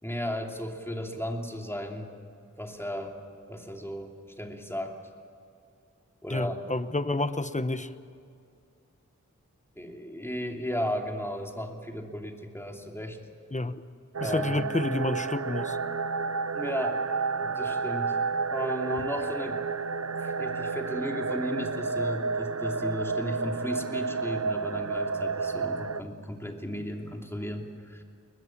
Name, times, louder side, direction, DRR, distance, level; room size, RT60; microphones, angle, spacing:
voice 1, 0.0-2.1 2.6-3.2 3.5-5.0 6.2-6.6 9.8-13.2 14.2-14.7 16.5-17.0 17.4-18.2 18.5-19.6 20.0-28.0, equal, 10° left, 2 dB, 3.0 m, -35 dB
voice 2, 6.3-7.9 13.5-13.7 14.2-15.8, left 2 dB, 25° left, 11 dB, 1.0 m, -29 dB
sound 1, 14.1-26.0, right 4 dB, 55° right, 0.7 m, -31 dB
22.0 x 21.0 x 7.5 m, 2.5 s
wide cardioid pair, 60°, 31 cm